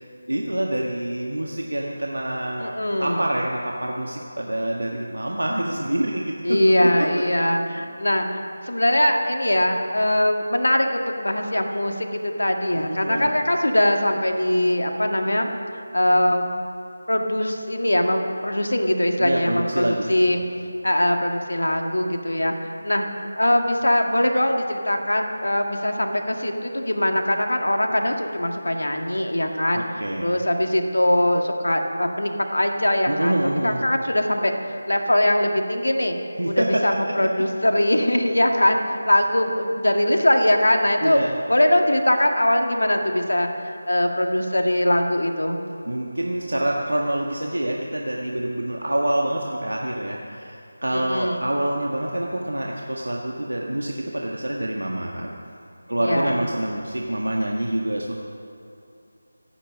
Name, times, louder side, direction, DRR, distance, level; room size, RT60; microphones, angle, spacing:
voice 1, 0.0-2.7 3.0-7.2 12.7-13.3 19.2-20.3 29.7-30.3 33.1-33.8 36.4-36.8 41.0-41.3 45.8-55.3 55.9-58.1, right 1 dB, 85° right, -1 dB, 1.5 m, -26 dB
voice 2, 2.6-3.2 6.4-15.5 15.9-16.5 17.1-20.4 20.8-23.1 23.4-34.5 34.9-36.2 36.5-41.2 41.5-45.6 50.9-51.5 56.0-56.4, left 1 dB, 85° left, 3 dB, 1.8 m, -22 dB
25.0 x 9.3 x 5.2 m, 2.7 s
figure-of-eight pair, 165°, 0 cm